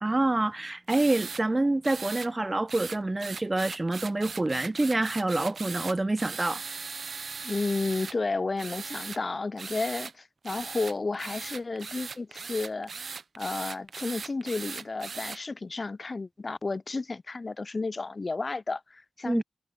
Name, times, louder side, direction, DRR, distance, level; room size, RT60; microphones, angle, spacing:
voice 1, 0.0-6.6 19.2-19.4, right 2 dB, 30° right, 0.8 m, -27 dB
sound 1, 0.9-1.4 1.8-2.3 2.7-8.2 8.6-9.2 9.6-10.1 10.4-15.4, right 5 dB, 70° right, 0.7 m, -39 dB
voice 2, 7.4-12.9 13.4-19.4, left 3 dB, 45° left, 0.3 m, -32 dB
cardioid pair, 45°, 0 cm